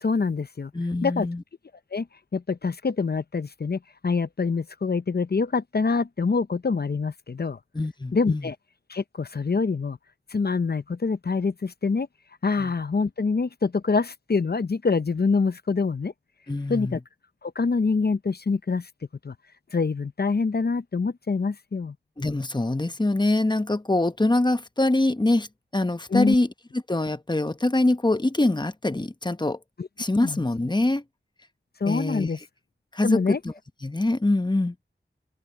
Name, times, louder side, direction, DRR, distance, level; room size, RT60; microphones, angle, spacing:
voice 1, 0.0-0.7 1.0-1.3 1.9-2.1 2.3-7.6 8.1-8.6 8.9-10.0 10.3-12.1 12.4-16.1 16.7-17.0 17.4-18.9 19.2-19.3 19.7-21.9 26.1-26.4 29.8-29.9 30.2-30.4 31.8-32.4 33.0-33.4, left 4 dB, 55° left, 0.7 m, -25 dB
voice 2, 0.7-1.4 7.7-8.5 12.6-12.7 16.5-17.0 22.2-25.5 25.7-26.5 26.9-29.6 30.0-31.0 31.8-32.3 32.9-33.5 33.8-34.7, left 2 dB, 25° left, 1.0 m, -24 dB
wide cardioid pair, 55°, 20 cm